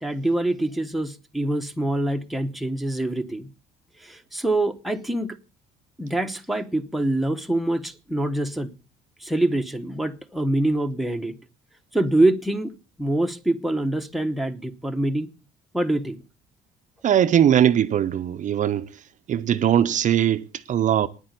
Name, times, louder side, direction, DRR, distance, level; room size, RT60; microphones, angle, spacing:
voice 1, 0.0-3.5 4.0-5.4 6.0-8.7 9.2-11.3 11.9-12.7 13.0-15.3 15.7-16.2, right 1 dB, ahead, 1.0 m, -25 dB
voice 2, 17.0-18.9 19.3-21.1, right 10 dB, 45° right, 0.6 m, -20 dB
9.9 x 8.6 x 8.2 m
cardioid pair, 110°, 17 cm